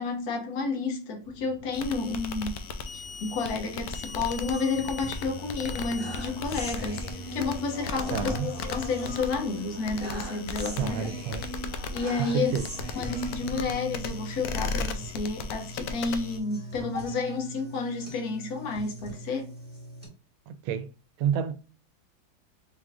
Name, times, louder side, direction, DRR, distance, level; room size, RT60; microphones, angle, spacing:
voice 1, 0.0-2.6 2.9-11.1 11.9-12.5 12.9-19.5, left 4 dB, 55° left, 1.4 m, -31 dB
sound 1, 1.2-14.6, right 3 dB, 60° right, 1.4 m, -50 dB
sound 2, 1.7-16.4, left 4 dB, 80° left, 0.8 m, -37 dB
sound 3, 4.1-20.1, right 1 dB, 5° right, 1.7 m, -40 dB
voice 2, 8.1-8.5 10.8-11.5 12.2-12.6 20.5-20.9 21.2-21.5, right 8 dB, 85° right, 1.4 m, -29 dB
4.6 x 3.6 x 2.4 m
omnidirectional pair, 2.2 m